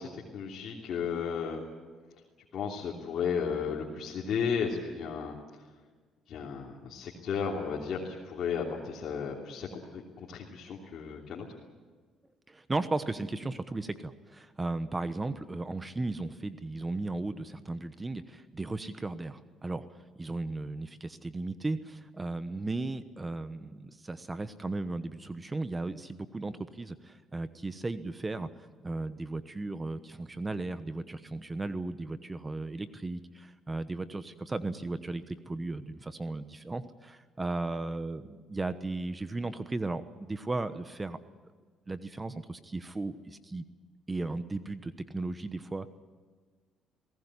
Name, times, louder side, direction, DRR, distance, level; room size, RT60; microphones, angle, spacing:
voice 1, 0.0-1.6 2.5-5.3 6.3-10.0 10.3-11.5, left 6 dB, 60° left, -3 dB, 3.1 m, -34 dB
voice 2, 12.5-19.9 20.2-28.5 28.8-41.2 41.9-43.6 44.1-45.9, right 2 dB, 20° right, 12 dB, 1.1 m, -36 dB
21.0 x 18.0 x 9.8 m, 1.5 s
cardioid pair, 85°, 0 cm